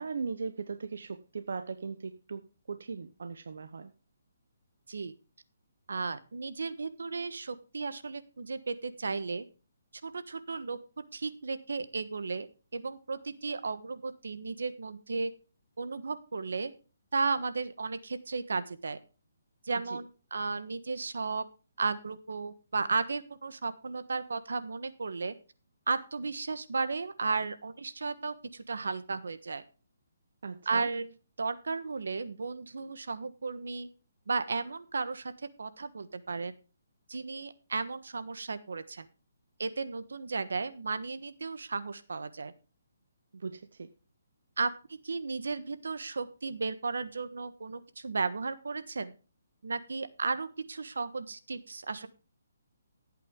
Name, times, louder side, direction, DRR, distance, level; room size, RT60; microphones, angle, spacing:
voice 1, 0.0-3.9 19.8-20.0 30.4-30.9 43.3-43.9, right 5 dB, 70° right, 10 dB, 0.9 m, -38 dB
voice 2, 5.9-9.4 10.0-10.8 11.1-12.5 12.7-15.3 15.8-16.7 17.1-19.0 19.6-21.4 21.8-25.3 25.9-29.6 30.6-33.9 34.3-35.3 35.6-36.5 37.1-39.1 39.6-42.5 44.6-49.1 49.6-52.1, right 4 dB, 85° right, 13 dB, 1.3 m, -34 dB
14.5 x 8.5 x 3.7 m, 0.35 s
hypercardioid pair, 170°, 0 cm